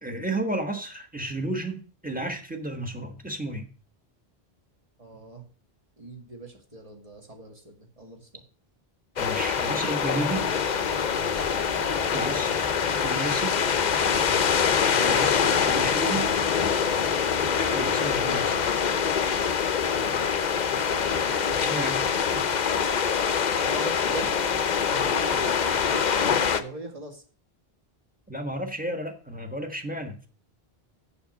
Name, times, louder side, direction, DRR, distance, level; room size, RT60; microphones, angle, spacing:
voice 1, 0.0-3.7 9.2-10.5 12.1-13.6 15.0-16.3 17.7-18.6 21.6-22.5 28.3-30.2, right 1 dB, 10° right, 5 dB, 1.3 m, -33 dB
voice 2, 5.0-5.5 6.0-8.4 14.9-15.1 17.7-18.0 19.9-22.6 23.6-24.4 24.9-27.2, right 3 dB, 35° right, 3 dB, 2.0 m, -41 dB
sound 1, 9.2-26.6, left 7 dB, 50° left, 0.7 m, -24 dB
sound 2, 10.3-18.7, right 2 dB, 50° right, 1.4 m, -44 dB
7.0 x 6.4 x 7.6 m, 0.39 s
omnidirectional pair, 1.0 m